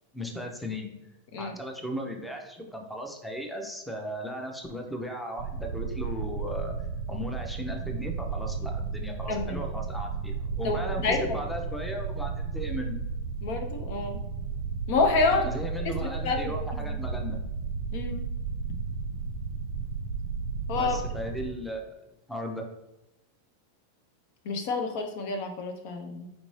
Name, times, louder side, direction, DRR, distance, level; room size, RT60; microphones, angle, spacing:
voice 1, 0.1-0.9 1.4-6.7 7.1-13.0 15.3-17.4 20.7-22.0 22.3-22.6, equal, 5° left, 2 dB, 0.7 m, -36 dB
sound 1, 5.4-21.5, right 5 dB, 65° right, 0.4 m, -33 dB
voice 2, 9.3-9.6 10.6-11.2 13.4-14.2 14.9-15.5 15.9-16.5 16.9-17.0 17.9-18.3 20.7-21.0 24.5-26.3, left 3 dB, 60° left, 5 dB, 0.6 m, -28 dB
4.4 x 2.6 x 3.2 m, 0.93 s
hypercardioid pair, 110°, 0 cm